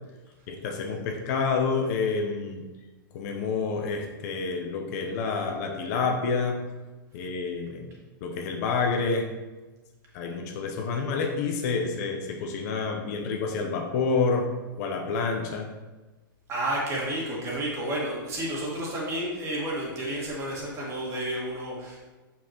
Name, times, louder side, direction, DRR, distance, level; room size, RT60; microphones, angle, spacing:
voice 1, 0.5-2.6 3.1-6.6 7.1-7.9 8.2-9.3 10.1-14.5 14.8-15.8, left 4 dB, 50° left, 3 dB, 0.8 m, -28 dB
voice 2, 16.5-22.1, right 1 dB, 25° right, -4 dB, 2.0 m, -31 dB
6.2 x 5.7 x 3.0 m, 1.2 s
hypercardioid pair, 135°, 12 cm